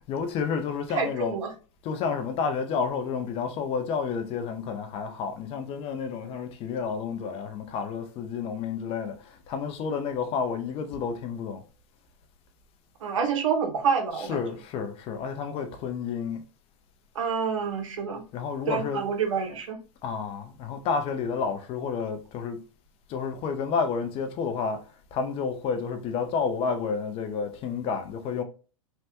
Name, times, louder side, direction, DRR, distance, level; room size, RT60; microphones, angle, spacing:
voice 1, 0.1-1.4 1.8-11.7 14.1-16.4 18.3-19.1 20.0-22.6 23.1-28.4, left 6 dB, 35° left, 0.6 m, -30 dB
voice 2, 0.9-1.5 13.0-14.4 17.1-18.2 18.7-19.8, right 6 dB, 85° right, 0.9 m, -27 dB
3.3 x 2.1 x 2.8 m
hypercardioid pair, 120°, 16 cm